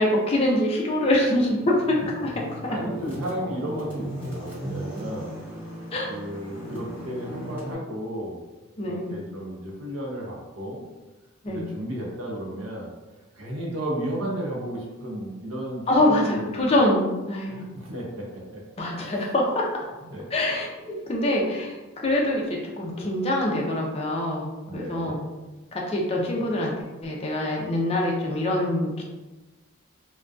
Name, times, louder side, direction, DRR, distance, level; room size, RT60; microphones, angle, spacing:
voice 1, 0.0-2.8 5.9-6.1 8.8-9.1 11.4-11.7 15.9-17.8 18.8-19.7 20.3-21.7 22.0-22.5 22.8-25.2 25.7-26.7 27.0-29.0, left 1 dB, 30° left, -2 dB, 0.4 m, -24 dB
sound 1, 1.4-7.7, equal, 10° right, 0.7 m, -37 dB
voice 2, 2.7-5.3 6.1-8.4 8.8-10.8 11.5-12.9 13.3-16.6 17.5-19.1 20.0-20.3 24.7-25.2, right 1 dB, 85° right, -2 dB, 0.6 m, -34 dB
2.5 x 2.1 x 2.3 m, 1.1 s
head